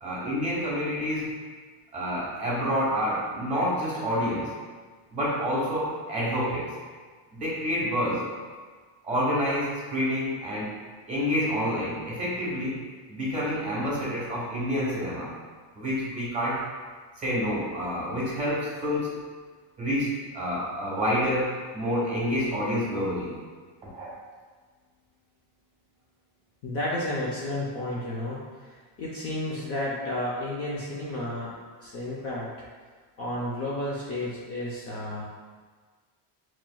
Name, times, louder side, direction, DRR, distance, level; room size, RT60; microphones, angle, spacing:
voice 1, 0.0-1.5 1.9-4.5 5.1-6.7 7.3-8.3 9.0-10.8 11.1-12.8 13.1-15.3 15.7-16.6 17.2-19.1 19.8-23.3 23.8-24.1, equal, 15° right, -6 dB, 1.1 m, -28 dB
voice 2, 26.6-31.5 31.8-32.5 33.2-35.3, left 1 dB, 35° left, -6 dB, 0.6 m, -32 dB
5.8 x 3.0 x 2.2 m, 1.5 s
cardioid pair, 175°, 42 cm